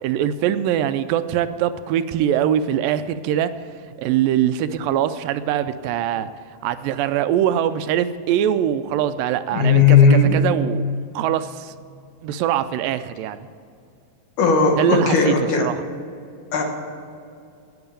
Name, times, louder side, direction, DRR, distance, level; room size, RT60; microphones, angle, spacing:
voice 1, 0.0-3.5 4.0-6.3 6.6-10.8 11.2-11.7 12.2-13.4 14.8-15.8, right 10 dB, 85° right, 12 dB, 2.2 m, -22 dB
voice 2, 9.5-10.4 14.4-15.7 16.5-16.6, left 5 dB, 65° left, 3 dB, 2.7 m, -16 dB
11.0 x 8.8 x 8.6 m, 2.4 s
omnidirectional pair, 4.1 m